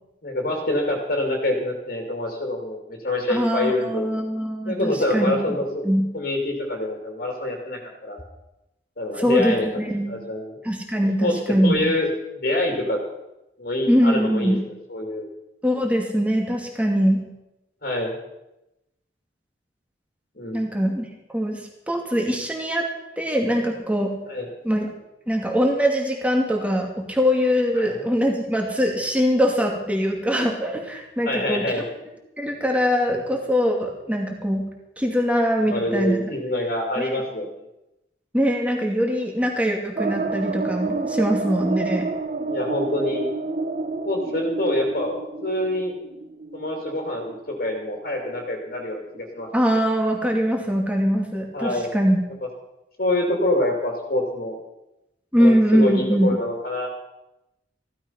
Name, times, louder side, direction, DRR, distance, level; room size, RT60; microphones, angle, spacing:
voice 1, 0.2-4.1 4.7-5.8 6.1-8.2 9.0-9.7 10.0-10.5 11.2-11.4 11.6-12.1 12.3-13.0 13.6-14.6 14.9-15.2 17.8-18.2 20.4-20.6 24.3-24.5 27.8-28.0 31.2-31.8 35.7-37.5 42.4-43.3 44.0-45.9 46.5-49.5 51.5-51.9 53.0-54.5 55.4-56.9, left 1 dB, 55° left, 2 dB, 2.7 m, -26 dB
voice 2, 3.3-5.4 5.8-6.1 9.2-10.1 10.6-11.9 13.9-14.6 15.6-17.2 20.5-21.1 21.3-22.9 23.2-24.2 24.6-24.9 25.3-31.7 32.4-34.7 35.0-36.2 37.0-37.1 38.3-42.1 49.5-52.2 55.3-56.4, equal, 10° right, 1 dB, 2.5 m, -22 dB
sound 1, 40.0-48.4 48.8-48.9 49.1-49.2, right 3 dB, 45° right, 0.8 m, -29 dB
15.5 x 13.0 x 5.7 m, 0.93 s
head